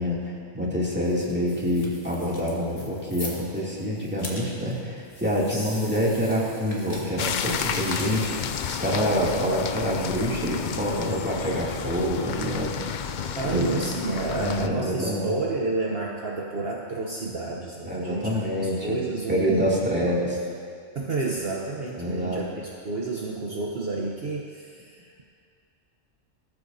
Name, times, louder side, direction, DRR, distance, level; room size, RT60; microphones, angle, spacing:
voice 1, 0.0-12.7 13.4-13.7 14.3-15.3 17.8-19.0 19.3-20.4 22.0-22.4, equal, 10° right, -6 dB, 2.6 m, -26 dB
sound 1, 0.7-10.0, left 1 dB, 45° left, 2.4 m, -43 dB
voice 2, 5.5-6.0 13.4-20.3 20.9-25.2, right 3 dB, 55° right, -1 dB, 1.1 m, -31 dB
sound 2, 7.2-14.7, left 7 dB, 60° left, 0.5 m, -31 dB
19.0 x 14.0 x 2.7 m, 2.2 s
omnidirectional pair, 1.3 m